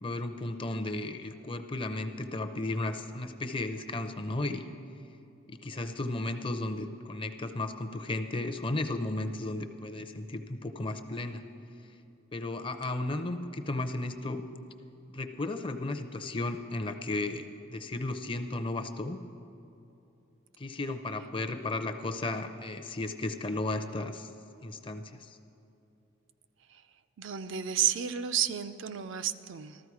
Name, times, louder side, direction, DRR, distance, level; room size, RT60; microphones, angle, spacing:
voice 1, 0.0-4.7 5.5-11.4 12.3-14.4 15.1-19.2 20.6-24.3 24.6-25.4, left 2 dB, 25° left, 7 dB, 0.5 m, -34 dB
voice 2, 27.2-29.8, right 9 dB, 65° right, 10 dB, 0.4 m, -31 dB
14.0 x 13.5 x 4.8 m, 2.8 s
head